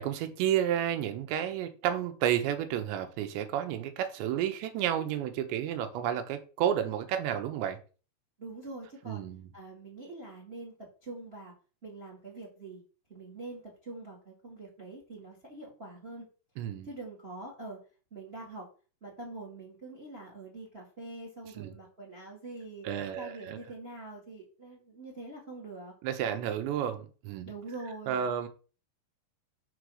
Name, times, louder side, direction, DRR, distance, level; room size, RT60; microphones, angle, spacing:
voice 1, 0.0-7.8 9.1-9.4 16.6-16.9 21.6-21.7 22.8-23.6 26.0-27.5 28.1-28.5, right 10 dB, 90° right, 3.3 m, -31 dB
voice 2, 8.4-9.2 9.5-10.7 11.0-11.5 11.8-12.8 13.1-16.2 16.8-17.8 18.1-18.7 19.0-25.9 27.4-28.3, right 2 dB, 25° right, 1.4 m, -44 dB
6.7 x 4.6 x 6.4 m
omnidirectional pair, 5.0 m